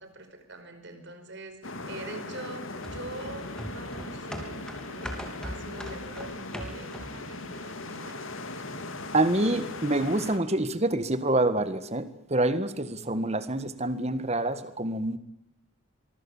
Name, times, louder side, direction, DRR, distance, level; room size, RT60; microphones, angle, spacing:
voice 1, 0.0-8.3, right 2 dB, 55° right, 7 dB, 4.9 m, -44 dB
sound 1, 1.6-10.4, left 2 dB, 65° left, 2.6 m, -39 dB
sound 2, 2.8-7.3 7.7-7.8, equal, 5° left, 3.2 m, -40 dB
voice 2, 9.1-15.2, right 2 dB, 30° right, 12 dB, 1.7 m, -27 dB
24.5 x 23.5 x 7.3 m, 0.79 s
head